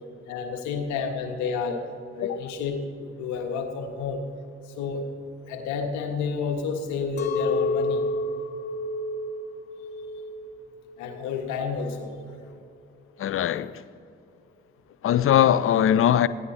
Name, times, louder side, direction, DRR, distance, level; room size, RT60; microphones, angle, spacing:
voice 1, 0.3-1.8 2.1-4.2 4.8-5.0 5.5-8.0 11.0-12.1, left 5 dB, 70° left, 1.6 m, -30 dB
Chink clink, 7.2-12.4, left 2 dB, 90° left, 0.6 m, -30 dB
voice 2, 13.2-13.8 15.0-16.3, left 10 dB, 45° left, 0.6 m, -21 dB
20.0 x 15.0 x 2.9 m
figure-of-eight pair, 40°, 31 cm